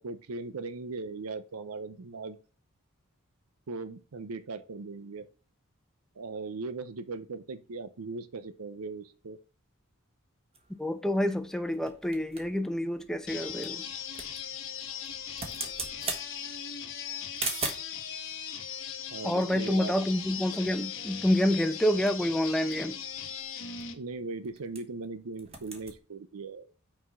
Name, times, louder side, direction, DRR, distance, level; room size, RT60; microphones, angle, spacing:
voice 1, 0.0-2.4 3.7-5.3 6.2-9.4 19.1-20.0 23.9-26.7, right 3 dB, 85° right, 0.6 m, -39 dB
sound 1, 10.5-18.0 18.8-20.4 20.7-20.8 21.1-21.4 21.8-25.1 25.3-26.0, right 3 dB, 30° right, 1.4 m, -41 dB
voice 2, 10.8-13.8 19.2-23.0, left 1 dB, 5° left, 0.7 m, -28 dB
sound 2, 13.3-23.9, left 8 dB, 60° left, 1.2 m, -39 dB
6.0 x 4.8 x 5.5 m
head